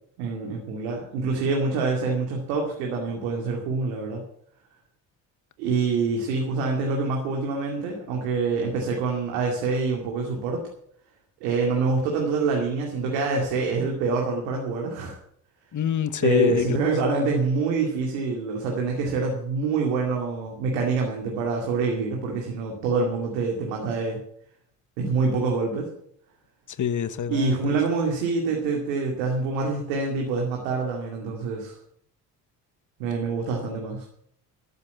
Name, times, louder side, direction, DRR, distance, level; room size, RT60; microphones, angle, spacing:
voice 1, 0.2-4.2 5.6-10.6 11.4-15.2 16.2-24.2 25.0-25.9 27.3-31.7 33.0-34.1, right 4 dB, 80° right, 2.5 m, -26 dB
voice 2, 15.7-16.8 26.8-27.8, left 9 dB, 40° left, 1.2 m, -25 dB
13.0 x 8.2 x 8.3 m
hypercardioid pair, 50°, 47 cm